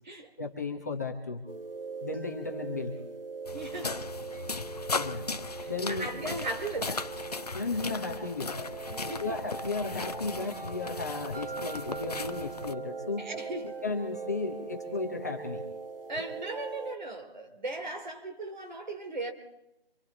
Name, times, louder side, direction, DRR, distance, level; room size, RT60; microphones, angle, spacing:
voice 1, 0.4-1.4 2.0-2.9 4.9-5.3 5.7-6.1 7.5-8.7 9.2-13.3 13.8-15.6, left 3 dB, 15° left, 0 dB, 1.0 m, -34 dB
sound 1, 1.5-17.0, right 4 dB, 65° right, 1.5 m, -41 dB
sound 2, 3.5-12.7, left 3 dB, 40° left, 0.6 m, -37 dB
voice 2, 3.5-4.1 5.5-7.1 8.9-9.4 13.2-13.8 16.1-19.3, right 2 dB, 50° right, 4 dB, 3.3 m, -37 dB
25.5 x 24.0 x 4.2 m, 0.89 s
figure-of-eight pair, 170°, 30 cm